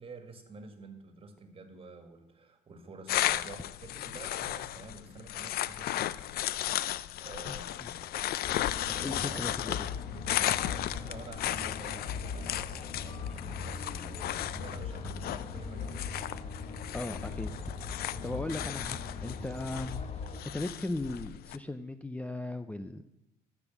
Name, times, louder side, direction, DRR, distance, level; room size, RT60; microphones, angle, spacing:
voice 1, 0.0-6.4 7.2-9.5 10.2-16.0, right 3 dB, 35° right, 6 dB, 2.1 m, -49 dB
sound 1, 3.1-21.6, left 13 dB, 65° left, 0.5 m, -35 dB
voice 2, 7.5-7.9 9.0-9.9 16.9-17.7 18.2-20.0 20.5-23.0, left 2 dB, 10° left, 10 dB, 0.5 m, -37 dB
sound 2, 8.4-20.4, left 5 dB, 40° left, 1.3 m, -40 dB
13.5 x 7.1 x 7.3 m, 0.87 s
cardioid pair, 110°, 17 cm